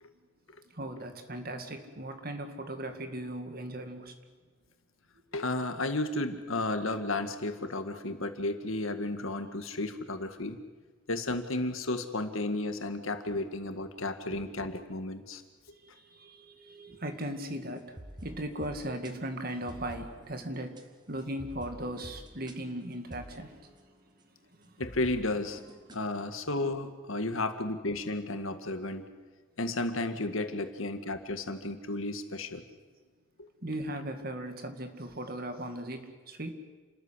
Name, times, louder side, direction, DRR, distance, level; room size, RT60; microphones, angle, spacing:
voice 1, 0.7-4.1 14.3-14.4 15.8-23.5 24.7-24.8 33.6-36.5, right 1 dB, 45° right, 6 dB, 2.2 m, -38 dB
voice 2, 5.3-10.6 11.1-15.4 24.8-25.6 25.9-29.1 29.6-32.6, left 2 dB, 75° left, 8 dB, 1.9 m, -33 dB
sound 1, 17.8-24.2 24.6-26.1, right 1 dB, 20° right, 1.4 m, -49 dB
29.0 x 14.0 x 9.9 m, 1.4 s
head